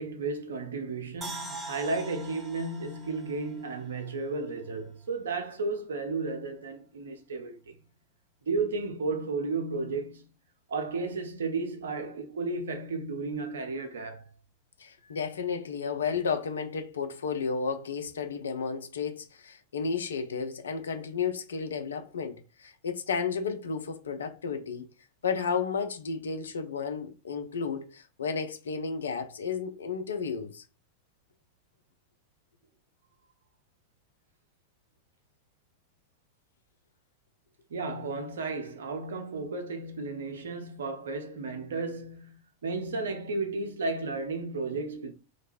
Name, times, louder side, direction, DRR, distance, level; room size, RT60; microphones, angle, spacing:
voice 1, 0.0-7.7 8.5-10.3 10.7-14.3 37.7-45.1, right 3 dB, 65° right, 0.5 m, -33 dB
sound 1, 1.2-4.4 4.7-4.8, right 2 dB, 15° right, 0.6 m, -43 dB
voice 2, 14.8-24.9 25.2-30.6, left 5 dB, 70° left, 0.4 m, -32 dB
2.5 x 2.2 x 3.0 m
figure-of-eight pair, 90°, 0 cm